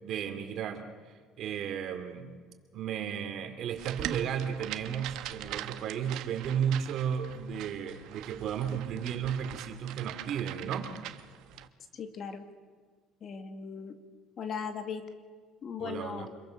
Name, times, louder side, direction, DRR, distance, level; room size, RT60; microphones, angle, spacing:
voice 1, 0.0-2.3 2.7-10.9 15.8-16.3, right 8 dB, 55° right, 7 dB, 2.9 m, -34 dB
sound 1, 3.8-11.7, right 13 dB, 70° right, 1.2 m, -42 dB
voice 2, 11.9-12.4 13.2-13.9 14.4-15.0 15.6-16.3, left 6 dB, 45° left, 7 dB, 2.3 m, -38 dB
26.0 x 22.5 x 6.6 m, 1.6 s
cardioid pair, 125°, 0 cm